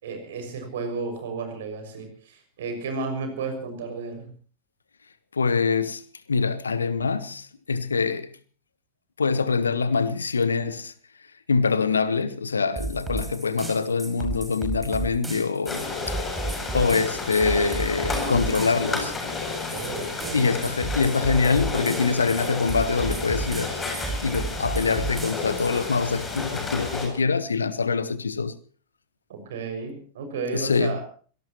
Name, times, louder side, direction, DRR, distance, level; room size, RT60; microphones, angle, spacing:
voice 1, 0.0-4.3 19.7-20.7 29.3-31.0, right 4 dB, 60° right, 6.1 m, -33 dB
voice 2, 5.3-6.0 6.3-8.3 9.2-10.9 11.5-16.1 16.7-19.1 20.3-23.8 24.2-28.5 30.5-31.0, left 4 dB, 75° left, 1.3 m, -24 dB
sound 1, 12.8-25.9, right 3 dB, 10° right, 5.5 m, -33 dB
sound 2, 15.7-27.1, left 3 dB, 20° left, 7.7 m, -32 dB
25.5 x 18.5 x 3.0 m
figure-of-eight pair, 90°, 0 cm